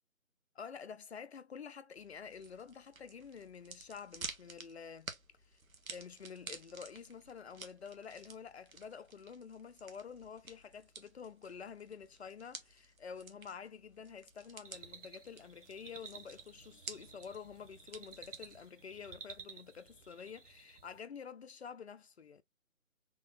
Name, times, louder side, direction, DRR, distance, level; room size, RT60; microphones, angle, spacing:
voice 1, 0.5-5.1 5.9-22.4, left 6 dB, 50° left, 0.6 m, -49 dB
sound 1, 2.0-18.7, right 4 dB, 80° right, 1.4 m, -52 dB
sound 2, 14.7-21.0, right 5 dB, 60° right, 1.4 m, -54 dB
3.8 x 3.7 x 2.6 m
figure-of-eight pair, 155°, 41 cm